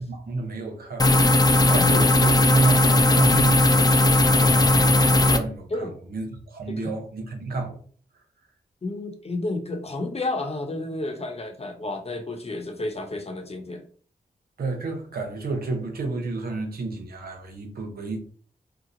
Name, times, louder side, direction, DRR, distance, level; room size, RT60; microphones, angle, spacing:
voice 1, 0.0-7.8 14.6-18.2, right 3 dB, 85° right, 0.8 m, -31 dB
sound 1, 1.0-5.4, left 1 dB, 25° left, 0.5 m, -17 dB
voice 2, 8.8-13.9, left 2 dB, 40° left, 0.8 m, -31 dB
2.9 x 2.2 x 3.8 m
cardioid pair, 50°, 15 cm